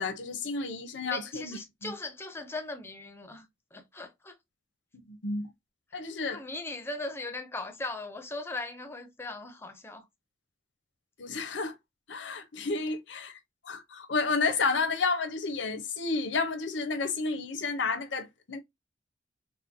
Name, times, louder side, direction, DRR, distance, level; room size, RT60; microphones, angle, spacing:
voice 1, 0.0-1.9 5.1-5.5 5.9-6.4 11.2-11.7 12.1-13.4 13.6-18.6, left 4 dB, 85° left, 0.8 m, -31 dB
voice 2, 1.0-4.4 6.3-10.1 12.8-12.9, left 2 dB, 15° left, 0.5 m, -39 dB
4.1 x 2.2 x 2.6 m
head